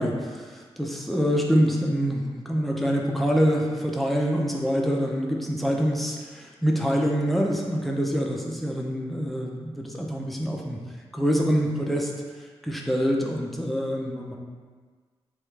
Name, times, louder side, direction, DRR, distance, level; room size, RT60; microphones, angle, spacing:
voice 1, 0.0-10.8 11.1-12.1 12.6-14.3, equal, ahead, -1 dB, 0.4 m, -25 dB
3.2 x 2.3 x 3.2 m, 1.5 s
wide cardioid pair, 95°, 11 cm